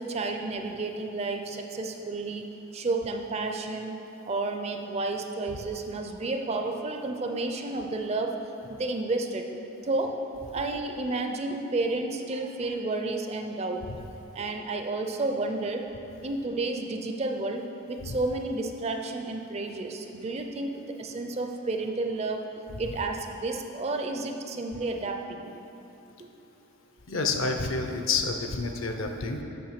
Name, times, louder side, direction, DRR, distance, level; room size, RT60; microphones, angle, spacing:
voice 1, 0.0-8.3 8.7-9.5 9.8-10.2 10.5-13.8 14.3-15.8 16.2-20.7 21.0-22.4 22.8-25.5 26.2-26.3, right 2 dB, 30° right, 4 dB, 0.4 m, -31 dB
voice 2, 27.1-29.4, left 4 dB, 60° left, 5 dB, 0.6 m, -29 dB
7.7 x 5.7 x 5.8 m, 3.0 s
head